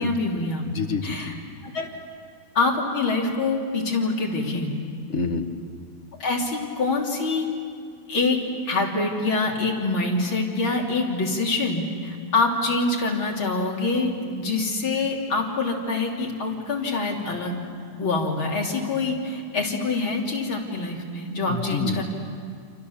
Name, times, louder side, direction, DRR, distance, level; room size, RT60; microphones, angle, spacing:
voice 1, 0.0-0.6 1.0-1.3 1.6-1.9 2.6-4.7 6.2-7.5 8.1-8.4 8.7-17.6 18.0-22.1, left 3 dB, 85° left, 0 dB, 4.0 m, -25 dB
voice 2, 0.6-1.3 5.1-5.4 21.5-22.0, left 4 dB, 35° left, 6 dB, 1.8 m, -28 dB
28.5 x 28.5 x 7.2 m, 2.2 s
omnidirectional pair, 2.2 m